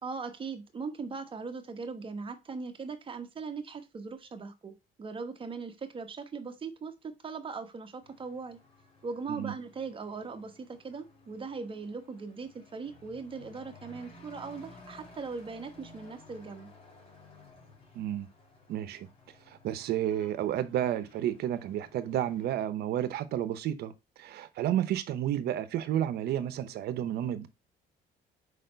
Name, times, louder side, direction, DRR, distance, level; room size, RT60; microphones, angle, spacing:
voice 1, 0.0-4.7 5.0-8.6 9.0-16.7, right 4 dB, 30° right, 1.2 m, -39 dB
Truck / Accelerating revving vroom, 8.0-22.5, left 2 dB, 35° left, 2.5 m, -56 dB
voice 2, 17.9-18.3 18.7-19.1 19.5-23.9 24.2-27.5, right 11 dB, 70° right, 0.9 m, -31 dB
5.0 x 4.3 x 5.2 m
cardioid pair, 110°, 17 cm